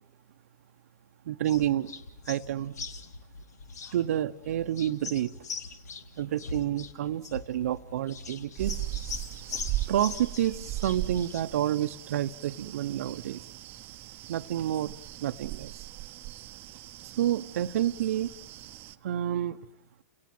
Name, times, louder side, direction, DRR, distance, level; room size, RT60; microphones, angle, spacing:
voice 1, 1.3-1.9 2.3-2.7 3.9-5.3 6.2-8.8 9.5-9.6 9.9-13.4 14.3-15.8 17.2-18.3 19.0-19.6, right 11 dB, 65° right, 8 dB, 0.7 m, -29 dB
sound 1, 1.4-11.4, left 4 dB, 85° left, 1.9 m, -42 dB
sound 2, 8.6-19.0, right 16 dB, 25° right, 0.8 m, -39 dB
30.0 x 18.5 x 7.7 m, 1.1 s
hypercardioid pair, 155°, 9 cm